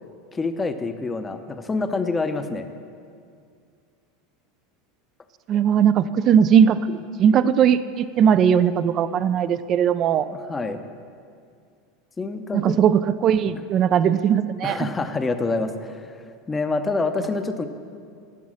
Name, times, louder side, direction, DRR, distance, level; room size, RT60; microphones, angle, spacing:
voice 1, 0.3-2.7 10.3-10.8 12.2-12.8 14.6-17.7, left 3 dB, 15° left, 9 dB, 0.6 m, -27 dB
voice 2, 5.5-10.3 12.5-14.9, right 8 dB, 40° right, 14 dB, 0.4 m, -19 dB
11.0 x 7.2 x 6.4 m, 2.3 s
supercardioid pair, 125°, 0 cm